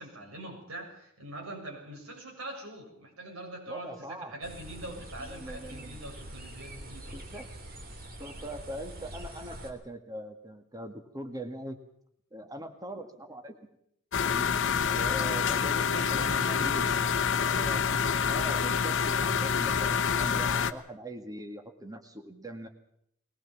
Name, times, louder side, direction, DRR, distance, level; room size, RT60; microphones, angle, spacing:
voice 1, 0.0-7.4 15.9-17.7, right 1 dB, 70° right, 1 dB, 7.1 m, -43 dB
voice 2, 3.7-4.4 5.2-6.0 7.1-7.5 8.2-11.8 12.3-13.7 14.2-14.5 14.9-15.8 16.1-16.9 17.4-17.8 18.3-22.7, right 1 dB, 20° right, 5 dB, 2.1 m, -41 dB
sound 1, 4.4-9.7, right 1 dB, 45° right, 3.2 m, -44 dB
sound 2, 14.1-20.7, left 6 dB, 60° left, 1.0 m, -27 dB
21.0 x 19.0 x 7.3 m, 0.71 s
head